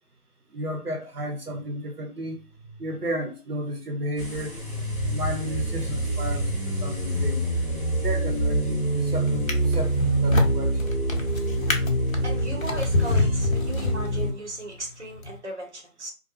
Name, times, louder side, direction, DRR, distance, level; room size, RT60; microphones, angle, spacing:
voice 1, 0.5-2.4 2.8-4.5 5.1-7.4 8.0-10.9, equal, 85° right, 1.0 m, -33 dB
sound 1, 4.2-14.3, right 1 dB, 25° right, 1.0 m, -26 dB
Drawer open or close, 8.3-8.7 9.3-14.5 15.2-15.3, left 3 dB, 60° left, 0.7 m, -28 dB
voice 2, 12.2-16.1, right 1 dB, 50° right, 0.9 m, -36 dB
2.5 x 2.2 x 2.9 m
figure-of-eight pair, 170°, 46 cm